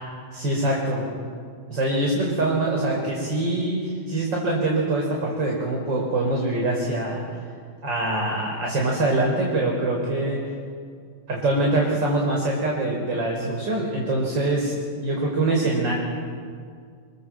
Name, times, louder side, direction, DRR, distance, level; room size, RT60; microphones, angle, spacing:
voice 1, 0.3-1.0 1.7-7.2 7.8-10.4 11.3-15.9, right 2 dB, 35° right, -1 dB, 5.1 m, -24 dB
27.5 x 27.0 x 7.7 m, 2.1 s
omnidirectional pair, 3.7 m